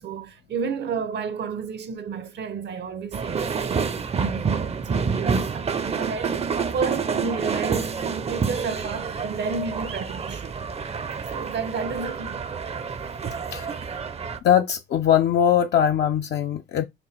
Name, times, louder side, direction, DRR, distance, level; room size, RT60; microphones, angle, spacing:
voice 1, 0.0-3.9 4.2-6.4 6.7-10.6 11.3-12.4, right 5 dB, 60° right, 0.8 m, -31 dB
sound 1, 3.1-14.4, right 5 dB, 30° right, 0.5 m, -28 dB
voice 2, 14.4-16.9, left 9 dB, 60° left, 0.5 m, -21 dB
6.0 x 2.2 x 3.3 m
cardioid pair, 90°, 20 cm